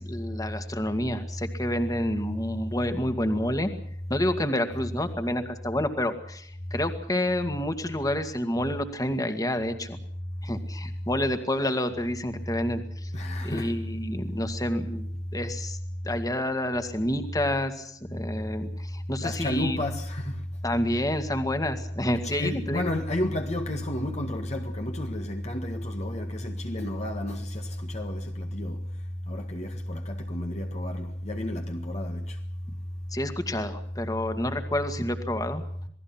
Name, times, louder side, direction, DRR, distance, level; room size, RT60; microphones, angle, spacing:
voice 1, 0.0-3.7 4.1-10.0 10.4-13.1 13.4-15.8 16.0-19.8 20.6-22.8 33.1-35.6, left 1 dB, 20° left, 2.2 m, -29 dB
voice 2, 13.1-13.7 19.2-20.4 22.2-28.8 29.3-32.3, left 1 dB, 40° left, 1.8 m, -31 dB
28.0 x 19.5 x 5.9 m
head